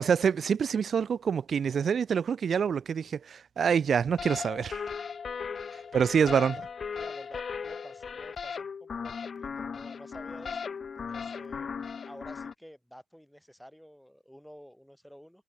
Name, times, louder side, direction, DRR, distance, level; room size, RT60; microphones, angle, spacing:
voice 1, 0.0-4.8 5.9-6.5, right 7 dB, 40° right, 0.5 m, -26 dB
sound 1, 4.2-12.5, left 6 dB, 35° left, 2.7 m, -37 dB
voice 2, 5.6-6.5 6.9-10.8 11.1-11.7 12.0-15.4, equal, ahead, 7.5 m, -50 dB
cardioid pair, 110°, 0 cm